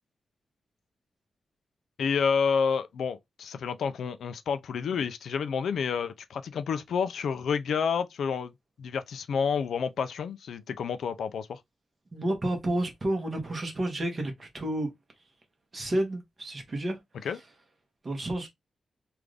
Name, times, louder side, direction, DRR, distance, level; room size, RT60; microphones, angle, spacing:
voice 1, 2.0-8.5 8.8-11.6 17.2-17.4, left 6 dB, 85° left, 0.4 m, -29 dB
voice 2, 12.1-14.9 15.7-17.0 18.0-18.5, right 1 dB, 35° right, 1.2 m, -30 dB
3.5 x 2.5 x 3.3 m
wide cardioid pair, 140°, 0 cm